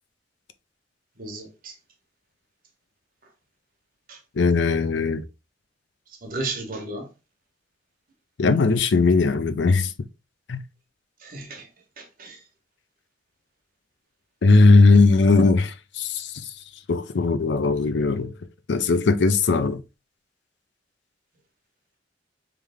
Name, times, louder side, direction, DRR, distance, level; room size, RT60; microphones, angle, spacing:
voice 1, 1.2-1.7 4.1-4.2 6.2-7.1 11.2-11.7 12.0-12.4, right 2 dB, 50° right, 1.2 m, -34 dB
voice 2, 4.4-5.2 8.4-9.9 10.5-10.6 14.4-16.3 16.9-18.3 18.7-19.8, left 3 dB, 75° left, 0.5 m, -18 dB
3.4 x 3.3 x 3.5 m
head